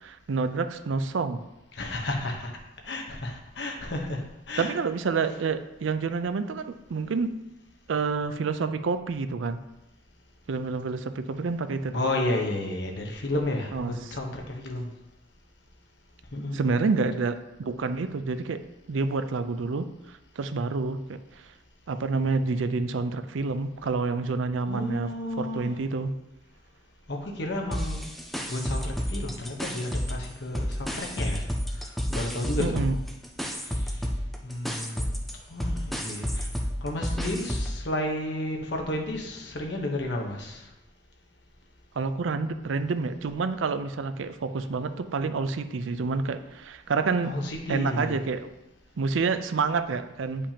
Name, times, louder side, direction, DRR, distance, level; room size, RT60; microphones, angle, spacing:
voice 1, 0.0-1.4 4.6-7.4 7.9-9.6 10.5-12.0 13.7-14.2 16.5-18.6 18.9-21.2 21.9-26.1 32.6-33.0 42.0-47.3 47.7-48.5 49.0-50.5, right 4 dB, 90° right, 10 dB, 0.5 m, -28 dB
voice 2, 1.7-2.5 2.8-4.7 11.9-14.9 16.3-16.8 24.7-25.7 27.1-28.1 28.5-31.4 32.1-32.9 33.9-34.0 34.4-35.1 35.5-36.5 36.8-40.6 47.2-48.2, left 1 dB, 65° left, 1 dB, 1.1 m, -32 dB
sound 1, 27.7-30.3 30.5-37.8, equal, ahead, 0.5 m, -31 dB
8.6 x 5.2 x 2.9 m, 0.96 s
head